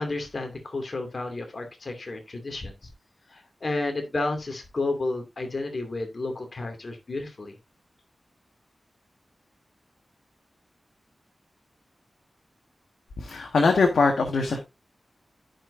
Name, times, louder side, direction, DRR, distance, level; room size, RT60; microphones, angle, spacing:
voice 1, 0.0-2.7 3.3-7.5, left 2 dB, 55° left, 2.5 m, -31 dB
voice 2, 13.2-14.6, left 4 dB, 90° left, 1.6 m, -22 dB
14.5 x 5.5 x 2.7 m
cardioid pair, 50°, 0 cm